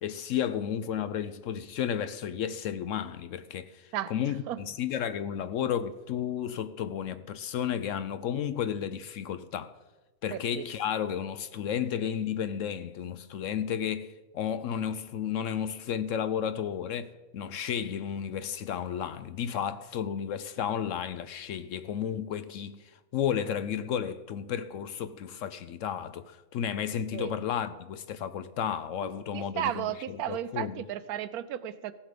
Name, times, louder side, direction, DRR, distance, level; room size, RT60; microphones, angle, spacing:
voice 1, 0.0-9.7 10.2-29.9 30.3-30.8, left 9 dB, 70° left, 0.9 m, -32 dB
voice 2, 3.9-4.6 10.3-10.7 27.1-27.4 29.0-31.9, right 11 dB, 85° right, 1.1 m, -35 dB
16.0 x 7.3 x 5.1 m
omnidirectional pair, 1.5 m